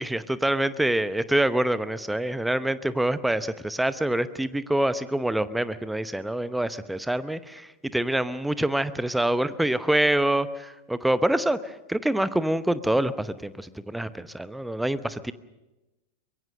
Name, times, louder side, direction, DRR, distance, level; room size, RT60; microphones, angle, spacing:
voice 1, 0.0-11.6 11.9-15.3, right 1 dB, 5° right, 15 dB, 0.9 m, -26 dB
23.5 x 22.0 x 6.5 m, 1.0 s
figure-of-eight pair, 90°, 0 cm